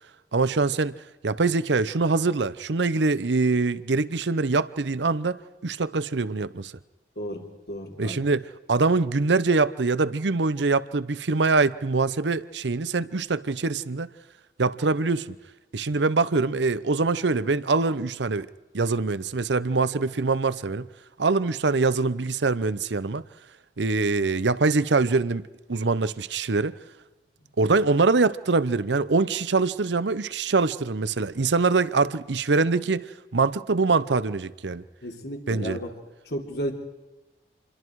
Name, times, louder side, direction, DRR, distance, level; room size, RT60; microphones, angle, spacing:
voice 1, 0.3-1.0 1.2-5.4 5.6-6.7 8.0-14.1 14.6-15.3 15.7-18.5 18.7-20.9 21.2-23.2 23.8-25.4 25.7-26.7 27.6-33.1 33.3-34.8 35.5-35.8, right 3 dB, 80° right, 0.7 m, -24 dB
voice 2, 7.7-8.2 35.0-35.9 36.3-36.7, equal, 65° left, 3.6 m, -33 dB
27.5 x 22.0 x 4.7 m
head